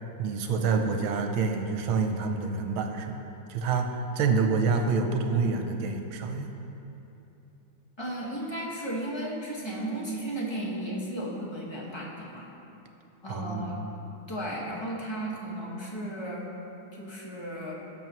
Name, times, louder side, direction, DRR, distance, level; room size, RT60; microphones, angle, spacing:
voice 1, 0.2-3.1 3.5-6.5 13.3-13.8, right 4 dB, 80° right, 5 dB, 1.5 m, -27 dB
voice 2, 8.0-12.5 13.2-13.8 14.3-16.4 17.0-17.7, right 1 dB, 15° left, -4 dB, 1.2 m, -34 dB
16.5 x 6.9 x 3.1 m, 2.9 s
omnidirectional pair, 2.3 m